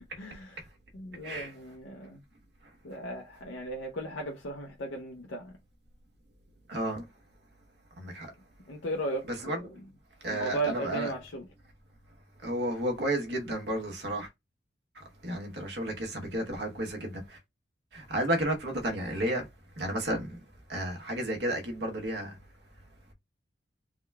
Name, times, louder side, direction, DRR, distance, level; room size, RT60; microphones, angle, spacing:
voice 1, 0.2-0.7 0.9-2.2 2.8-5.5 8.7-9.7 10.3-11.5, right 1 dB, 90° left, 0.6 m, -36 dB
voice 2, 6.7-7.0 8.0-8.3 9.4-9.8 10.2-11.1 12.4-14.3 15.0-17.4 17.9-19.5 19.8-20.4 20.7-22.4, right 1 dB, 65° right, 1.0 m, -32 dB
3.6 x 2.3 x 3.2 m
head